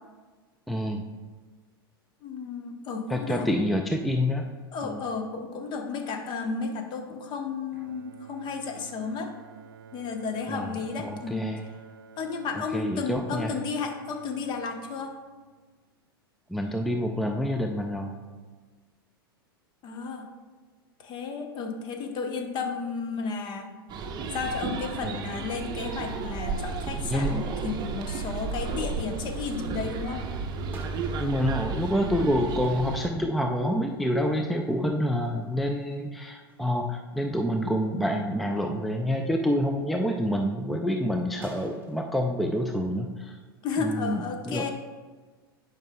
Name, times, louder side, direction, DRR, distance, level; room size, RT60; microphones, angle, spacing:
voice 1, 0.7-1.0 3.1-4.5 4.8-5.0 10.5-11.6 12.7-13.6 16.5-18.1 25.0-25.3 27.0-27.4 31.2-43.4 43.8-44.7, equal, ahead, 3 dB, 0.4 m, -27 dB
voice 2, 2.2-3.5 4.7-9.3 9.9-11.4 12.2-15.1 19.8-20.3 21.0-23.7 24.3-30.2 43.6-44.7, left 4 dB, 35° left, 4 dB, 0.9 m, -33 dB
Bowed string instrument, 7.7-15.9, right 6 dB, 70° right, 0.5 m, -50 dB
sound 1, 23.9-33.1, right 4 dB, 35° right, 0.7 m, -33 dB
sound 2, 30.7-31.6 33.4-33.5 34.0-34.7 35.1-37.0 37.4-37.6 38.2-38.3 41.4-42.1, right 2 dB, 15° right, 1.2 m, -51 dB
10.5 x 5.1 x 2.2 m, 1.4 s
hypercardioid pair, 95°, 13 cm